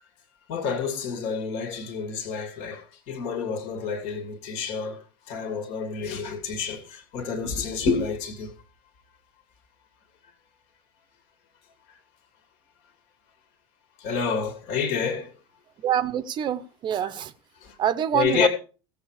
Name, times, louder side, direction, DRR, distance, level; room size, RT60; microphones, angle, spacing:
voice 1, 0.5-5.0 5.3-8.5 11.9-12.0 14.0-15.3 17.6-17.8 18.1-18.5, left 6 dB, 50° left, 2.6 m, -28 dB
voice 2, 15.8-17.3 17.8-18.5, right 10 dB, 35° right, 0.9 m, -25 dB
16.0 x 7.7 x 4.9 m
figure-of-eight pair, 85°, 13 cm